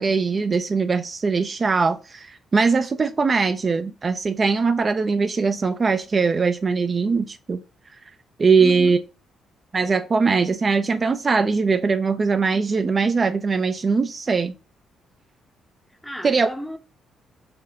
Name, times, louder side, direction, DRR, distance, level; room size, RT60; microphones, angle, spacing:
voice 1, 0.0-7.6 8.4-9.0 9.7-14.5 16.2-16.5, right 4 dB, 35° right, 0.3 m, -21 dB
voice 2, 8.6-9.0 16.0-16.8, left 1 dB, 5° left, 0.6 m, -33 dB
5.0 x 2.2 x 3.6 m
cardioid pair, 90°, 0 cm